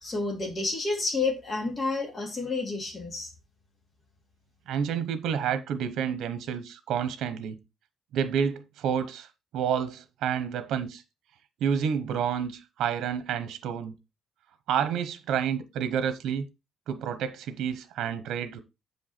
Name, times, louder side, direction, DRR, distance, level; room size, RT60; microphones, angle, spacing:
voice 1, 0.0-3.3, left 3 dB, 30° left, 2.6 m, -30 dB
voice 2, 4.7-7.6 8.1-9.3 9.5-11.0 11.6-14.0 14.7-16.5 16.9-18.6, right 8 dB, 90° right, 0.9 m, -29 dB
7.9 x 5.4 x 4.3 m
cardioid pair, 150°, 0 cm